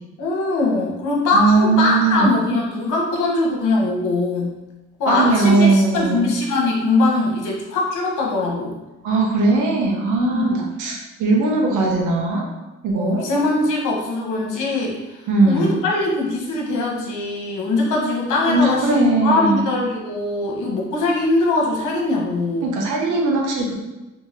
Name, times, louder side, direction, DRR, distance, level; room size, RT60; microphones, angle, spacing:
voice 1, 0.2-4.6 5.0-8.8 10.3-10.7 13.0-22.7, left 2 dB, 85° left, -1 dB, 1.0 m, -21 dB
voice 2, 1.3-2.3 5.1-6.3 9.0-10.5 10.8-12.5 12.8-13.2 15.3-15.8 18.5-19.6 22.6-23.7, right 3 dB, 80° right, 0 dB, 0.9 m, -19 dB
3.5 x 2.7 x 3.2 m, 1.1 s
cardioid pair, 90°, 30 cm